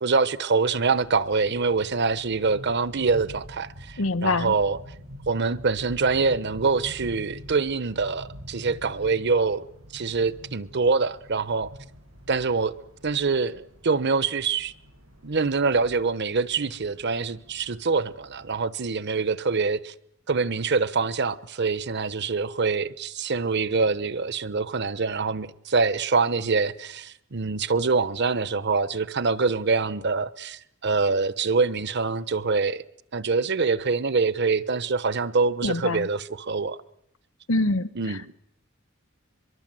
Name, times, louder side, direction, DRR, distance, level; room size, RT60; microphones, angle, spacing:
voice 1, 0.0-4.8 5.3-9.7 9.9-11.7 12.3-12.7 13.0-14.7 15.2-19.9 20.3-32.8 33.1-36.8 37.9-38.3, right 4 dB, 55° right, 1.0 m, -25 dB
sound 1, 0.8-18.6, equal, 85° right, 7.9 m, -46 dB
voice 2, 4.0-4.5 35.6-36.1 37.5-37.9, left 2 dB, 75° left, 1.0 m, -24 dB
24.0 x 23.0 x 7.7 m
head